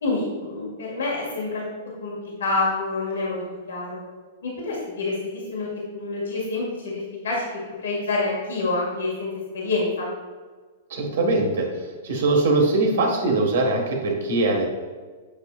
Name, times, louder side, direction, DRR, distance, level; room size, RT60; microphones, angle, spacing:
voice 1, 0.0-1.6 2.0-3.4 3.7-4.0 4.4-5.7 5.9-7.5 7.8-10.1, left 3 dB, 85° left, -4 dB, 1.8 m, -27 dB
voice 2, 10.9-14.7, right 2 dB, 70° right, 1 dB, 1.5 m, -22 dB
8.0 x 5.3 x 2.4 m, 1.4 s
hypercardioid pair, 135°, 0 cm